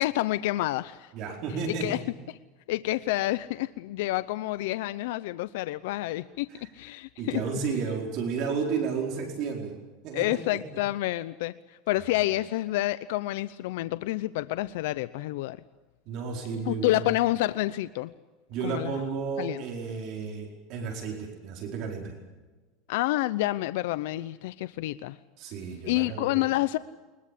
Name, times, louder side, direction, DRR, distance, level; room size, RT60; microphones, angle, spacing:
voice 1, 0.0-1.1 1.7-2.0 2.3-2.4 2.7-7.4 10.1-15.6 16.7-18.1 18.6-19.0 19.4-19.6 22.9-25.2 25.8-26.8, left 17 dB, 75° left, 14 dB, 0.7 m, -29 dB
voice 2, 1.1-2.0 6.5-6.7 7.2-9.7 10.0-10.6 16.1-17.0 18.5-22.1 25.4-26.4, right 5 dB, 50° right, 1 dB, 4.7 m, -32 dB
22.5 x 21.5 x 8.4 m, 1.3 s
supercardioid pair, 155°, 0 cm